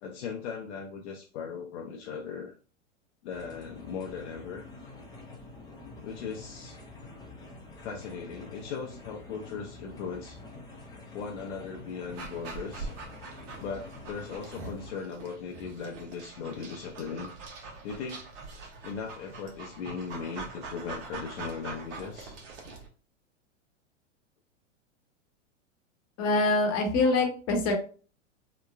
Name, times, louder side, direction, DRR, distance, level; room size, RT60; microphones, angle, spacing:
voice 1, 0.0-2.5 3.2-4.6 6.0-6.8 7.8-10.4 11.1-12.9 13.6-17.3 17.8-18.2 18.8-22.3, left 5 dB, 60° left, 1 dB, 0.6 m, -38 dB
sound 1, 3.3-14.9, left 3 dB, 10° left, 0.6 m, -47 dB
Dog, 12.1-22.9, right 3 dB, 50° right, 1.0 m, -43 dB
voice 2, 26.2-27.7, left 2 dB, 35° left, 1 dB, 1.0 m, -24 dB
2.9 x 2.1 x 2.4 m, 0.38 s
hypercardioid pair, 110°, 37 cm